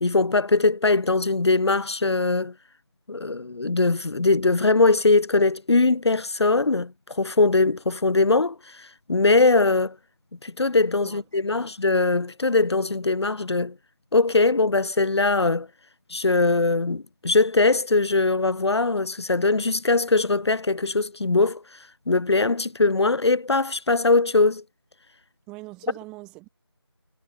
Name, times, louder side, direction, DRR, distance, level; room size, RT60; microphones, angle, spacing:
voice 1, 0.0-2.5 3.1-10.0 10.4-13.7 14.1-15.7 16.1-21.6 22.1-24.6, left 3 dB, 80° left, 0.5 m, -21 dB
voice 2, 11.0-11.7 25.5-26.5, right 22 dB, 5° right, 3.3 m, -43 dB
figure-of-eight pair, 170°, 14 cm